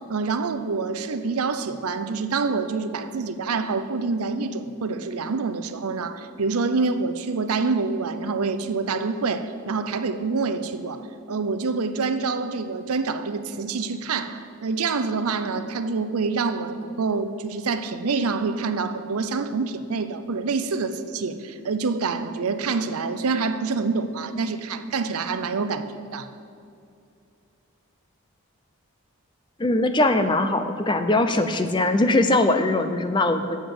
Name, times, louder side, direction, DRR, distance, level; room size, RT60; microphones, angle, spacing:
voice 1, 0.0-26.3, right 4 dB, 90° right, 11 dB, 0.6 m, -26 dB
voice 2, 29.6-33.6, left 2 dB, 20° left, 9 dB, 0.5 m, -21 dB
7.9 x 7.0 x 7.8 m, 2.5 s
head